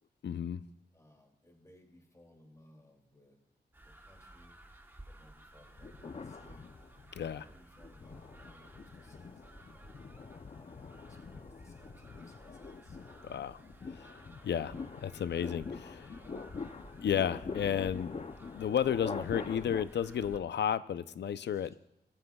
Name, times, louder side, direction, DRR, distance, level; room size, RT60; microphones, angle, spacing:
voice 1, 0.2-0.6 7.2-7.4 13.2-13.6 13.9-14.2 14.4-16.1 17.0-18.1 18.5-21.7, left 9 dB, 85° left, 14 dB, 0.5 m, -33 dB
voice 2, 0.9-3.4 3.9-4.6 5.0-6.7 7.2-13.0 21.4-21.8, left 1 dB, 20° left, 1 dB, 2.5 m, -62 dB
sound 1, 3.7-20.4, right 1 dB, 10° right, 1.1 m, -55 dB
sound 2, 5.8-7.2 7.7-19.8, left 4 dB, 35° left, 0.6 m, -44 dB
22.0 x 13.5 x 2.3 m, 0.79 s
wide cardioid pair, 125°, 18 cm